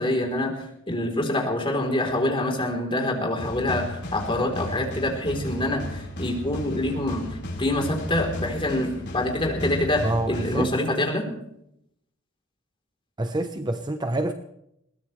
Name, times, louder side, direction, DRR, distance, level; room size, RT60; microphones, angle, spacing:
voice 1, 0.0-11.3, left 1 dB, 25° left, 1 dB, 3.8 m, -26 dB
sound 1, 3.4-10.6, left 1 dB, 55° left, 4.5 m, -35 dB
voice 2, 10.0-10.7 13.2-14.3, right 1 dB, 20° right, 7 dB, 0.9 m, -27 dB
21.5 x 18.5 x 3.3 m, 0.76 s
head